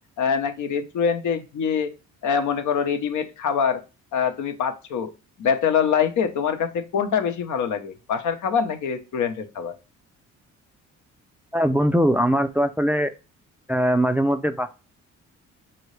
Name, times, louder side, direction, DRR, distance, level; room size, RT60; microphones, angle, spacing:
voice 1, 0.2-1.9 2.2-3.8 4.1-5.1 5.4-9.7, left 7 dB, 75° left, 7 dB, 0.9 m, -24 dB
voice 2, 11.5-13.1 13.7-14.7, equal, 5° right, 8 dB, 0.3 m, -21 dB
5.9 x 2.8 x 3.2 m, 0.30 s
cardioid pair, 90°, 30 cm